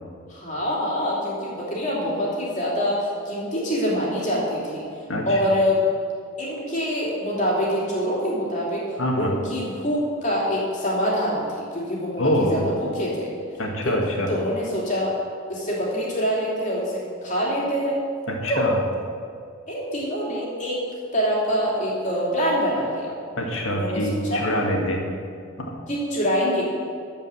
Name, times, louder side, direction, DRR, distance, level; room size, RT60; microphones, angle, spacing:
voice 1, 0.3-4.8 5.3-5.8 6.4-8.8 9.2-11.4 11.7-13.3 13.8-13.9 14.3-15.1 15.5-18.0 18.5-18.7 19.7-20.8 21.1-23.1 23.7-24.4 25.9-26.7, equal, 35° left, -5 dB, 2.9 m, -25 dB
voice 2, 9.0-9.3 12.2-12.6 13.6-14.3 18.3-18.8 23.4-25.0 25.6-25.7, equal, 70° left, 0 dB, 1.8 m, -25 dB
13.0 x 5.4 x 7.7 m, 2.3 s
head